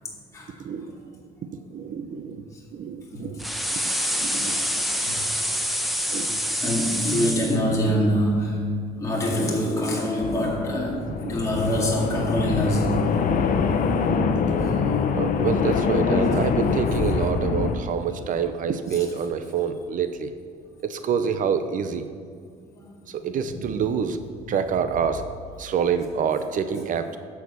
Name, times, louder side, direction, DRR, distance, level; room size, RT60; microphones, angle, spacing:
voice 1, 0.6-0.9 1.7-2.4 2.7-3.4 4.1-4.7 6.1-6.3 7.8-8.0 9.4-9.5 10.9-11.4 12.9-13.1 14.5-20.3 20.8-22.0 23.1-24.2 24.5-25.2 25.6-27.2, right 7 dB, 50° right, 10 dB, 0.6 m, -27 dB
sound 1, 3.4-7.6, equal, ahead, 0.8 m, -26 dB
voice 2, 6.6-8.7 9.0-11.0 11.3-13.0 22.8-22.9, equal, 20° left, -4 dB, 2.0 m, -24 dB
sound 2, 10.2-17.8, left 5 dB, 50° left, 0.7 m, -24 dB
10.5 x 4.8 x 6.8 m, 2.1 s
cardioid pair, 110°, 17 cm